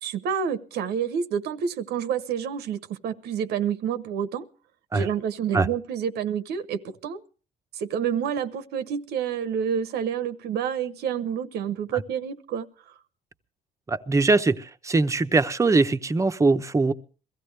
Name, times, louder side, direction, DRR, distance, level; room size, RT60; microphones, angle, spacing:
voice 1, 0.0-4.5 4.9-7.2 7.7-12.9, right 8 dB, 75° right, 0.9 m, -28 dB
voice 2, 13.9-16.9, right 3 dB, 20° right, 0.8 m, -22 dB
22.5 x 15.0 x 3.3 m
cardioid pair, 110°, 17 cm